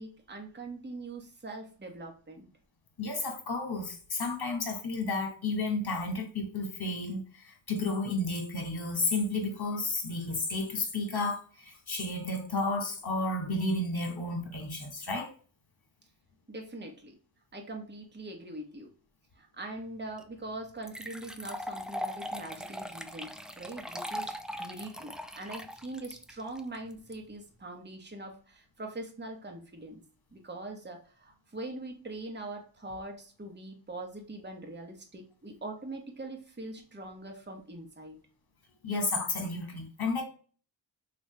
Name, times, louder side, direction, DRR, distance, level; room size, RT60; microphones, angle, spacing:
voice 1, 0.0-2.5 16.5-17.2 17.5-18.9 19.3-30.0 30.3-38.2, right 2 dB, 20° right, 1.0 m, -42 dB
voice 2, 3.0-15.3 38.8-40.2, left 2 dB, 50° left, 1.4 m, -32 dB
sound 1, 20.2-20.3 20.8-27.1, equal, ahead, 0.3 m, -39 dB
3.1 x 2.5 x 3.1 m
cardioid pair, 45°, 49 cm